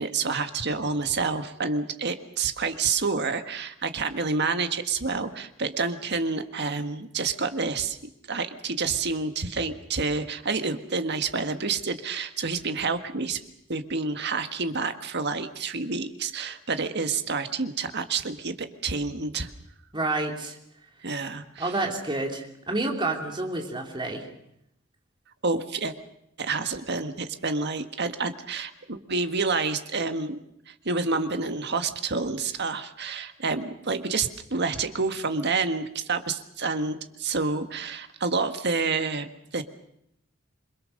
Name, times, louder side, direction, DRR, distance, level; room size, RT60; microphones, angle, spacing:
voice 1, 0.0-8.0 8.3-13.4 13.7-19.5 21.0-21.7 25.4-25.9 26.4-30.4 30.7-39.6, right 4 dB, 55° right, 8 dB, 1.6 m, -28 dB
voice 2, 19.9-20.6 21.6-24.3, right 2 dB, 25° right, 2 dB, 3.4 m, -29 dB
27.5 x 22.0 x 6.6 m, 0.76 s
head